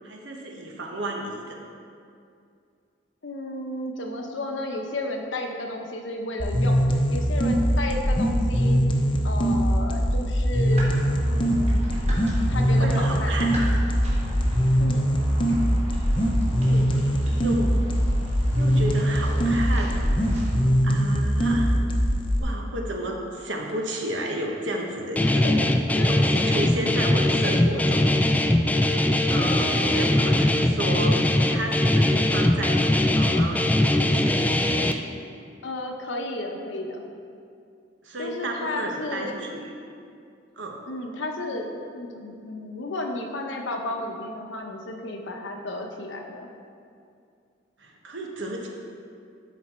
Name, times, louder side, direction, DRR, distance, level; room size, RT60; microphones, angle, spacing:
voice 1, 0.0-1.6 12.8-13.5 16.5-17.8 18.5-20.0 20.8-21.7 22.4-25.4 26.1-28.1 28.7-28.8 29.3-32.8 33.1-34.3 38.0-39.7 40.6-40.8 47.8-48.7, right 1 dB, 85° right, 1 dB, 1.1 m, -32 dB
voice 2, 3.2-6.8 7.1-8.8 9.2-10.9 11.2-11.9 12.3-13.4 14.8-15.2 25.4-26.4 35.6-37.0 38.2-39.4 40.9-46.5, left 1 dB, 80° left, 2 dB, 0.9 m, -33 dB
sound 1, 6.4-22.4, equal, 30° left, 0.8 m, -22 dB
sound 2, 10.7-20.6, equal, 35° right, 1.7 m, -37 dB
Guitar, 25.2-34.9, left 1 dB, 10° left, 0.3 m, -21 dB
12.0 x 4.2 x 4.3 m, 2.4 s
head